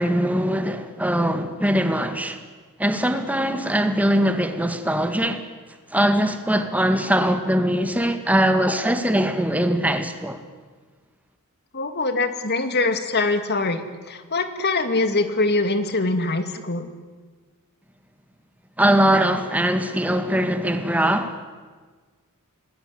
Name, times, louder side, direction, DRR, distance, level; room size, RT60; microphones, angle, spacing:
voice 1, 0.0-2.4 2.8-5.4 5.9-10.4 18.8-21.4, equal, 5° right, 2.1 m, -21 dB
voice 2, 11.7-16.9, left 2 dB, 50° left, 2.3 m, -23 dB
26.5 x 20.0 x 10.0 m
head